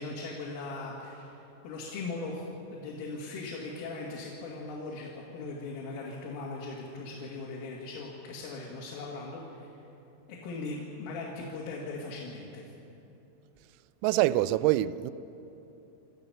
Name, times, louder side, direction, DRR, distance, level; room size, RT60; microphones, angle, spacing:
voice 1, 0.0-1.4 1.6-2.4 2.7-9.7 10.3-12.6, left 3 dB, 75° left, 4.8 m, -39 dB
voice 2, 14.0-15.1, right 15 dB, 90° right, 3.3 m, -25 dB
28.5 x 14.0 x 7.0 m
omnidirectional pair, 5.9 m